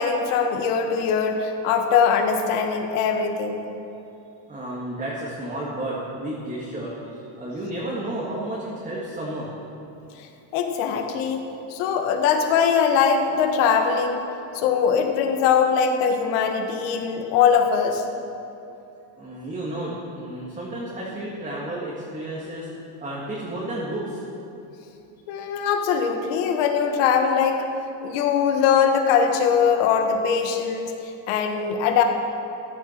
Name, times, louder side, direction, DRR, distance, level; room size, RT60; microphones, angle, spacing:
voice 1, 0.0-3.6 10.5-14.2 14.5-18.0 25.3-27.6 28.0-32.0, left 6 dB, 85° left, 4 dB, 1.6 m, -21 dB
voice 2, 4.5-9.5 16.5-16.6 19.2-22.7 23.0-24.2, right 1 dB, 15° right, -6 dB, 1.9 m, -32 dB
14.5 x 11.0 x 4.5 m, 2.8 s
cardioid pair, 145°, 48 cm